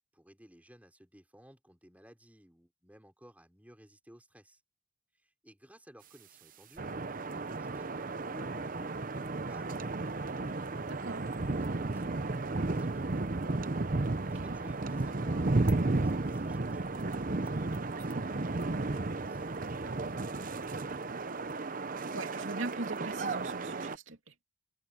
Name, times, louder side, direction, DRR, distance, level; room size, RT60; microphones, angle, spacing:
voice 1, 0.0-4.6 5.1-6.9 7.3-11.1 11.4-13.3 14.3-21.0, equal, 10° right, 4.3 m, -56 dB
sound 1, 6.8-24.0, right 2 dB, 45° right, 0.8 m, -33 dB
voice 2, 10.9-11.2 14.4-14.6 22.1-24.3, right 2 dB, 85° right, 2.8 m, -40 dB
head